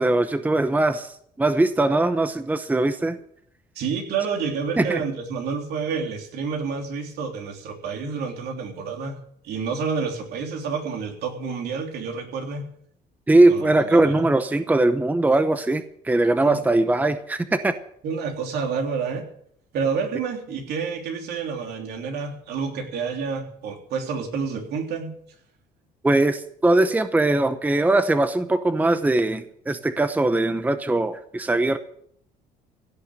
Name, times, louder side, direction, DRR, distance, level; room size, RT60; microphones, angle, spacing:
voice 1, 0.0-3.2 4.8-5.0 13.3-17.8 26.0-31.8, right 2 dB, 10° right, 10 dB, 0.8 m, -21 dB
voice 2, 3.7-9.2 9.4-12.7 13.5-14.3 16.4-16.6 18.0-19.2 19.7-25.1, right 5 dB, 75° right, 2 dB, 3.4 m, -29 dB
16.5 x 6.6 x 9.2 m, 0.66 s
cardioid pair, 110°, 17 cm